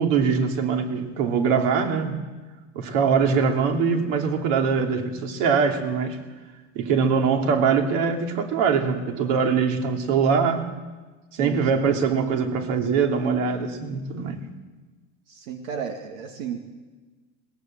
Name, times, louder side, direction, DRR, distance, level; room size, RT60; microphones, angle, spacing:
voice 1, 0.0-2.2 2.7-6.2 6.7-10.7 11.3-14.4, right 6 dB, 65° right, 3 dB, 3.1 m, -22 dB
voice 2, 11.4-11.7 15.3-16.6, right 7 dB, 90° right, 4 dB, 2.4 m, -33 dB
21.0 x 20.0 x 7.8 m, 1.3 s
supercardioid pair, 130°, 40 cm